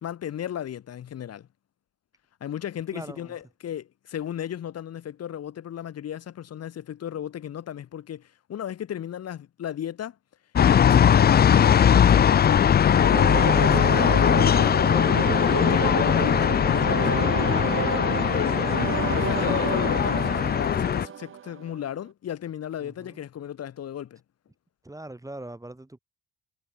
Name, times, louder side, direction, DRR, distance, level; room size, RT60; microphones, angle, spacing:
voice 1, 0.0-1.5 2.4-10.2 10.6-17.7 18.3-24.2, left 10 dB, 55° left, 1.4 m, -35 dB
voice 2, 2.9-3.3 22.8-23.2 24.8-26.0, right 1 dB, 10° right, 2.3 m, -41 dB
sound 1, 10.6-21.1, left 8 dB, 35° left, 0.5 m, -20 dB
sound 2, 12.9-21.8, right 9 dB, 40° right, 0.9 m, -30 dB
cardioid pair, 90°, 30 cm